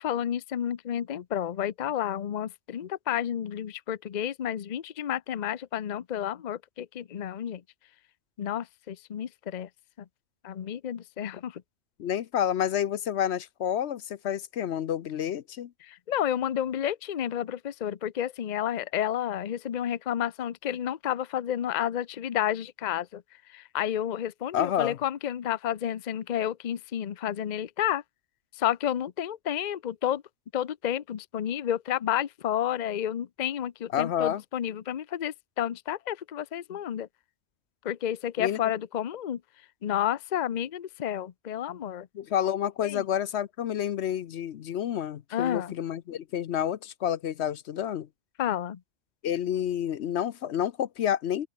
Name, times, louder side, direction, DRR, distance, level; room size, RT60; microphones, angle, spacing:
voice 1, 0.0-7.6 8.4-9.7 10.0-10.1 10.4-11.6 15.8-23.2 23.5-28.0 28.5-30.2 30.5-37.1 37.8-39.4 39.8-42.1 42.8-43.0 45.3-45.7 48.4-48.8, left 10 dB, 45° left, 0.7 m, -31 dB
voice 2, 12.0-15.7 24.5-25.0 33.9-34.4 38.4-38.6 42.1-48.1 49.2-51.5, left 10 dB, 70° left, 1.0 m, -29 dB
open air
omnidirectional pair, 1.2 m